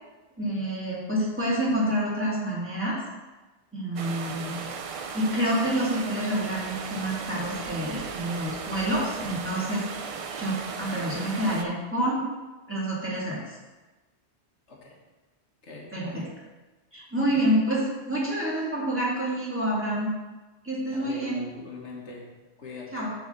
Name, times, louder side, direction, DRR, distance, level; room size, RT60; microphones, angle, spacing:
voice 1, 0.4-3.0 3.7-4.6 5.1-9.8 10.4-12.2 12.7-13.5 15.9-16.2 16.9-20.1 20.6-21.4 22.9-23.1, right 1 dB, 10° right, -8 dB, 2.3 m, -28 dB
sound 1, 4.0-11.6, right 5 dB, 55° right, 0.3 m, -36 dB
voice 2, 15.6-16.3 17.3-17.4 20.9-22.3 22.6-23.1, left 3 dB, 85° left, -2 dB, 1.7 m, -42 dB
6.9 x 4.0 x 6.6 m, 1.2 s
omnidirectional pair, 1.2 m